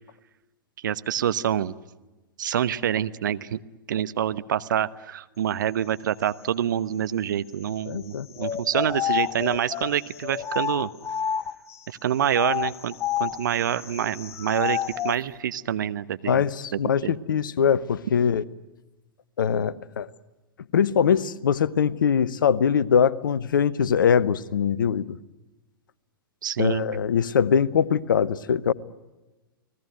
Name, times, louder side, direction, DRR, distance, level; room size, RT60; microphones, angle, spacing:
voice 1, 0.8-1.8 2.4-3.6 3.9-10.9 11.9-14.8 15.0-16.4 16.7-17.2 26.4-26.9, right 10 dB, 60° right, 1.0 m, -26 dB
voice 2, 7.9-8.3 16.3-18.4 19.4-20.1 20.7-25.2 26.6-28.7, left 7 dB, 60° left, 1.0 m, -22 dB
sound 1, 8.4-11.8 12.3-15.2, left 9 dB, 20° left, 0.9 m, -29 dB
29.5 x 20.0 x 9.1 m
figure-of-eight pair, 105°, 12 cm